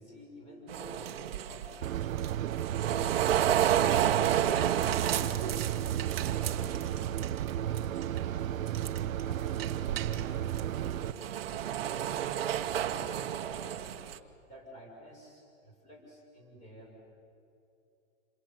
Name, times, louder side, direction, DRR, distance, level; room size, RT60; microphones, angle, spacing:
voice 1, 0.0-3.7 4.2-7.3 7.6-8.8 9.1-14.0 14.4-17.0, equal, 15° left, 0 dB, 6.2 m, -51 dB
sound 1, 0.7-7.5 7.8-8.2 8.7-9.2 9.6-14.2, right 10 dB, 45° right, 1.3 m, -31 dB
sound 2, 1.8-11.1, right 11 dB, 85° right, 0.8 m, -33 dB
28.0 x 28.0 x 7.7 m, 2.8 s
hypercardioid pair, 170°, 40 cm